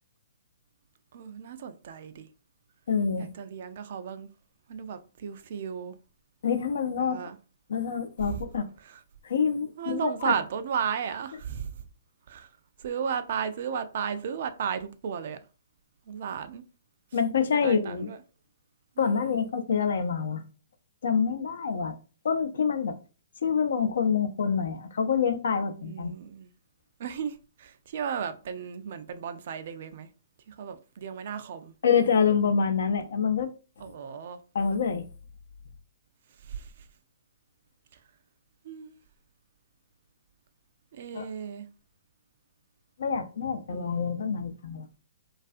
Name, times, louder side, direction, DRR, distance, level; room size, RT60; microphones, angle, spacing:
voice 1, 1.1-2.3 3.2-4.3 4.7-6.0 7.0-7.4 8.2-8.4 8.8-9.0 9.8-11.9 12.3-12.5 12.8-15.4 16.1-16.6 17.5-18.2 19.0-19.4 25.8-26.5 27.0-30.1 30.5-31.7 33.8-34.4 36.4-36.9 37.9-38.0 38.6-39.0 40.9-41.7 43.7-44.0, right 7 dB, 55° right, 0.3 m, -35 dB
voice 2, 2.9-3.3 6.4-7.2 7.7-8.7 9.2-10.3 17.1-18.1 19.0-20.4 21.0-22.0 22.2-23.0 23.4-26.1 31.8-33.5 34.5-35.1 41.1-41.3 43.0-44.9, left 6 dB, 70° left, 0.4 m, -26 dB
2.3 x 2.3 x 2.5 m
hypercardioid pair, 125°, 0 cm